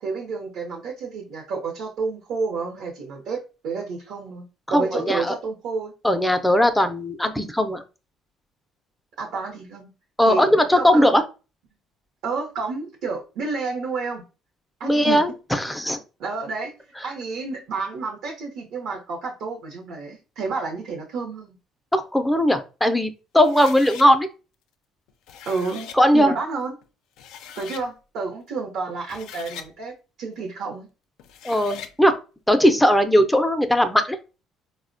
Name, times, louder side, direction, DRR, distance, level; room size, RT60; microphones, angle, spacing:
voice 1, 0.0-5.9 9.2-9.9 10.2-10.4 10.7-11.0 12.2-14.2 14.8-15.2 15.7-15.8 16.2-16.7 17.0-21.6 25.4-25.9 26.1-26.7 27.6-29.9 30.2-30.9, right 4 dB, 75° right, 0 dB, 0.6 m, -30 dB
voice 2, 4.7-5.3 6.0-7.8 10.2-11.2 14.8-16.0 21.9-24.3 26.0-26.3 31.4-32.2 32.5-34.2, equal, 5° left, 8 dB, 0.4 m, -19 dB
sound 1, 23.4-24.1 25.1-26.0 26.8-26.9 27.2-27.9 28.9-29.7 31.2-31.9, left 8 dB, 80° left, 0.3 m, -40 dB
4.1 x 2.0 x 2.5 m, 0.32 s
cardioid pair, 95°, 0 cm